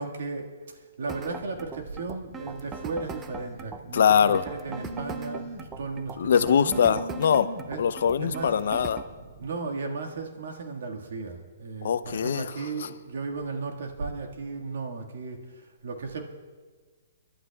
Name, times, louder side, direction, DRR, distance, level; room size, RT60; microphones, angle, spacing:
voice 1, 0.0-5.5 5.8-7.0 7.7-7.8 8.2-8.6 9.4-16.2, right 4 dB, 70° right, 1 dB, 1.7 m, -35 dB
sound 1, 1.1-9.1, right 5 dB, 15° right, 0.5 m, -40 dB
Telephone, 1.4-9.5, right 1 dB, 30° right, 2.4 m, -43 dB
voice 2, 3.9-4.4 6.2-7.5 7.8-9.0 11.8-12.5, left 7 dB, 65° left, 14 dB, 0.5 m, -22 dB
29.5 x 11.5 x 2.3 m, 1.4 s
hypercardioid pair, 160°, 0 cm